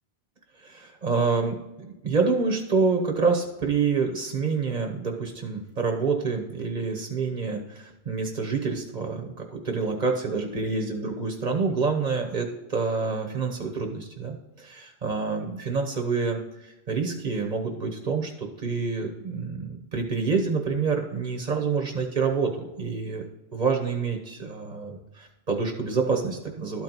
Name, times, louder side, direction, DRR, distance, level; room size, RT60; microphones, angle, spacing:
voice 1, 0.6-23.2 23.5-26.8, right 4 dB, 45° right, 3 dB, 1.1 m, -27 dB
12.5 x 4.6 x 4.0 m, 1.0 s
omnidirectional pair, 1.1 m